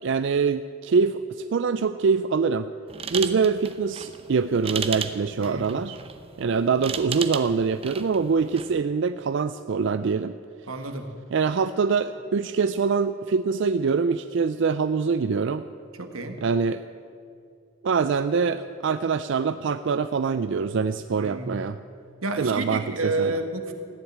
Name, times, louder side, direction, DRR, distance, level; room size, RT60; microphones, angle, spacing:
voice 1, 0.0-2.7 3.1-6.0 6.4-10.3 11.3-15.7 16.4-16.8 17.8-21.8 22.4-23.4, right 5 dB, 60° right, 11 dB, 0.4 m, -24 dB
sound 1, 2.9-8.8, right 6 dB, 30° right, 0.7 m, -35 dB
voice 2, 10.7-11.2 16.0-16.4 21.1-21.5 22.2-23.7, right 2 dB, 85° right, 6 dB, 1.6 m, -30 dB
15.0 x 10.0 x 8.7 m, 2.5 s
head